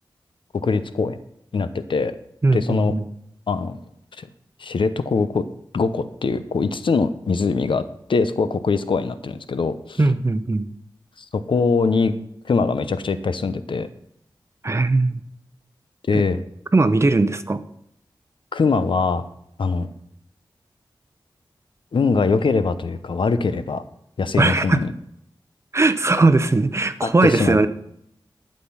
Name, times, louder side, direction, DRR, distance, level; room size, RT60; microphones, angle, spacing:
voice 1, 0.5-1.2 1.5-2.1 2.5-3.0 3.5-3.8 4.2-4.3 4.6-5.4 5.7-7.8 8.1-10.0 11.5-12.1 12.5-13.9 16.1-16.4 18.5-19.2 19.6-19.9 21.9-23.8 24.2-24.9 27.0-27.6, left 4 dB, 80° left, 12 dB, 0.7 m, -22 dB
voice 2, 2.4-3.0 10.0-10.7 14.6-15.2 16.1-16.2 16.7-17.6 24.4-24.8 25.7-27.7, right 3 dB, 35° right, 12 dB, 0.7 m, -19 dB
12.0 x 6.6 x 5.7 m, 0.74 s
wide cardioid pair, 75°, 8 cm